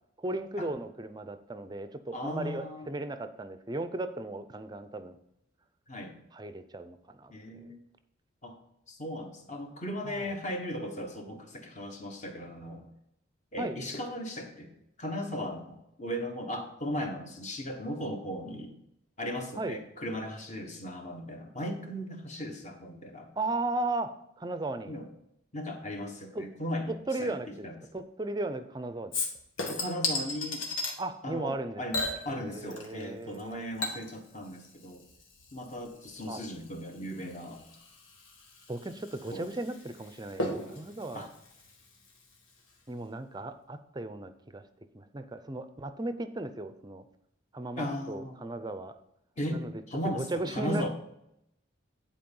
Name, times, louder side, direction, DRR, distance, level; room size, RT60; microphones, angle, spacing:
voice 1, 0.2-5.2 6.3-7.7 10.0-10.3 13.6-13.8 19.6-19.8 23.4-24.1 24.4-24.9 26.3-26.4 27.1-29.1 31.0-32.0 32.3-33.7 36.3-36.4 38.7-41.3 42.9-44.6 44.9-47.0 47.5-48.9 49.5-49.8 50.1-50.9, right 2 dB, 20° right, 10 dB, 0.5 m, -36 dB
voice 2, 2.1-2.9 5.9-6.1 7.3-7.8 8.4-8.5 8.9-12.8 13.5-14.7 15.0-18.7 19.2-23.3 24.9-25.1 25.5-26.9 27.2-27.4 27.6-27.8 29.7-30.6 31.2-35.0 35.5-37.6 39.3-39.5 41.1-41.3 47.8-48.4 49.4-50.9, equal, 35° left, 3 dB, 1.2 m, -37 dB
Chink clink / Liquid, 29.1-31.0 31.9-33.1 33.3-42.4 42.7-42.8, left 2 dB, 85° left, 1.8 m, -37 dB
10.5 x 4.4 x 5.4 m, 0.80 s
head